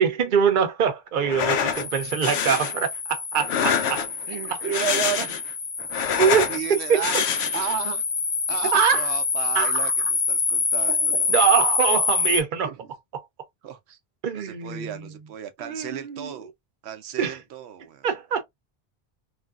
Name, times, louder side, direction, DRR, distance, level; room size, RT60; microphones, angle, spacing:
voice 1, 0.0-4.1 4.5-4.6 6.2-7.0 8.7-9.1 9.5-9.9 10.9-12.7 14.2-15.1 15.6-16.4 17.2-17.4 18.0-18.4, right 7 dB, 55° right, 0.8 m, -24 dB
sound 1, 1.2-1.8 2.2-2.7 3.4-4.2 4.6-5.5 5.8-6.6 7.0-7.8, left 8 dB, 85° left, 0.9 m, -26 dB
sound 2, 1.7-12.4, left 4 dB, 35° left, 0.4 m, -26 dB
voice 2, 4.3-5.3 6.0-7.2 7.5-8.0 8.5-11.4 12.6-12.8 13.6-14.0 14.3-16.5 16.8-18.1, right 8 dB, 90° right, 0.9 m, -33 dB
3.2 x 2.6 x 2.2 m
omnidirectional pair, 1.1 m